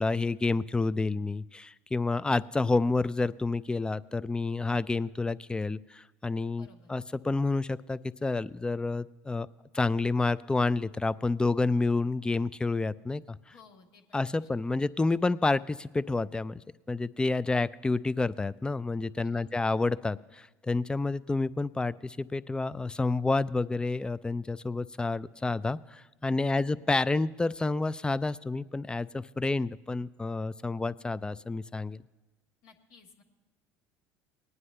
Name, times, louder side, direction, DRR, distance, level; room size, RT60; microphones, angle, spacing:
voice 1, 0.0-9.5 9.7-13.4 14.1-16.6 16.9-32.0, left 3 dB, 10° left, 17 dB, 0.3 m, -29 dB
voice 2, 6.5-6.9 13.5-14.5 14.7-14.8 19.2-19.5 26.4-26.7 32.6-33.2, left 5 dB, 65° left, 0 dB, 1.4 m, -57 dB
19.0 x 9.5 x 3.3 m, 1.1 s
hypercardioid pair, 80°, 7 cm